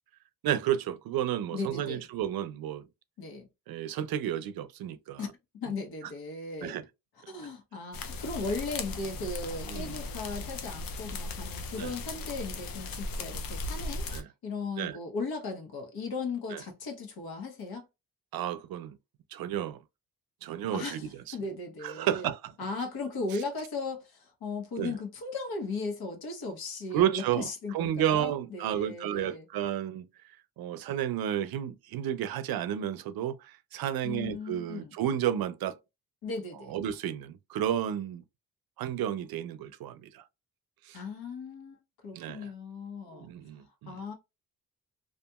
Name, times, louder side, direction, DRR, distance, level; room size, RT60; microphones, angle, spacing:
voice 1, 0.4-2.8 3.7-5.3 6.6-6.8 9.7-10.0 11.8-11.9 14.1-14.3 14.8-15.0 16.5-16.6 18.3-19.0 19.3-19.8 20.4-21.3 21.8-22.4 24.8-24.9 26.9-30.1 30.6-35.8 36.7-38.2 38.8-40.2 40.9-41.0 42.1-42.5 43.1-44.0, right 10 dB, 80° right, 0.5 m, -32 dB
voice 2, 1.5-2.0 3.2-3.5 5.2-5.3 5.5-6.8 7.3-14.1 14.4-17.9 20.7-22.3 22.6-29.5 34.0-34.9 36.2-36.8 40.9-43.3 43.9-44.1, left 3 dB, 90° left, 1.0 m, -37 dB
sound 1, 7.9-14.2, left 2 dB, 75° left, 0.6 m, -37 dB
2.8 x 2.4 x 2.3 m
wide cardioid pair, 155°, 36 cm